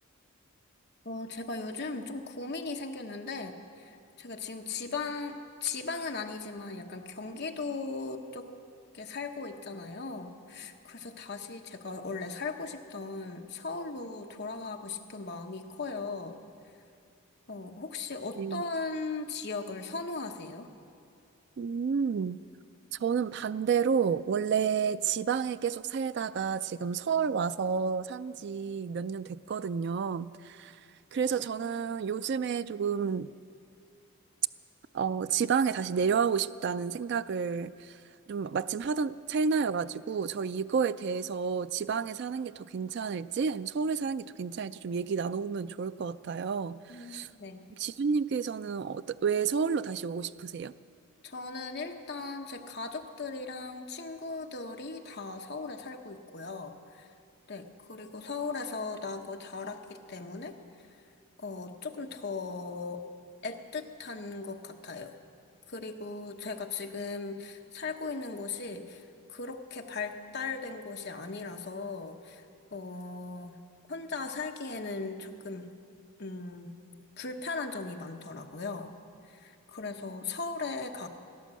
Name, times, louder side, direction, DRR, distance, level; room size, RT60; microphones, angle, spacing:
voice 1, 1.0-5.4 5.6-8.5 8.9-16.4 17.5-20.7 46.9-47.6 51.2-57.1 57.5-60.6 61.4-63.0 63.4-65.1 65.7-72.5 72.7-73.6 73.9-75.7 76.2-76.7 77.2-78.9 79.3-81.1, left 4 dB, 50° left, 4 dB, 1.0 m, -38 dB
voice 2, 21.6-22.4 23.0-30.8 31.1-33.3 34.9-38.0 38.3-47.3 47.8-50.7, right 6 dB, 50° right, 14 dB, 0.3 m, -30 dB
17.5 x 11.0 x 7.6 m, 2.3 s
head